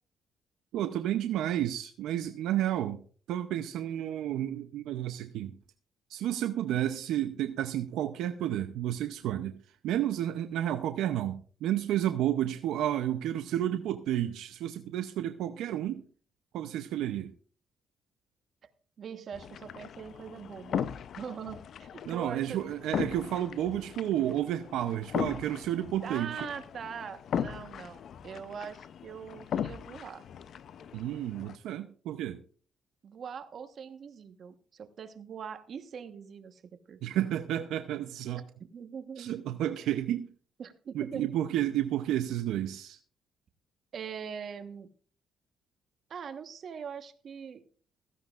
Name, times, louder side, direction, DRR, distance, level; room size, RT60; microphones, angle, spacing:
voice 1, 0.7-3.0 3.3-5.5 6.1-9.6 9.8-16.0 16.5-17.3 22.1-26.3 30.9-32.4 37.0-38.4 39.2-40.3 40.9-43.0, right 12 dB, 85° right, 0.7 m, -31 dB
voice 2, 19.0-20.9 21.1-22.6 26.0-30.2 33.0-36.6 36.9-37.0 38.6-39.3 40.6-41.3 43.9-44.9 46.1-47.6, right 7 dB, 55° right, 1.3 m, -42 dB
sound 1, 19.3-31.6, left 8 dB, 65° left, 0.6 m, -38 dB
16.0 x 14.5 x 2.5 m
cardioid pair, 90°, 0 cm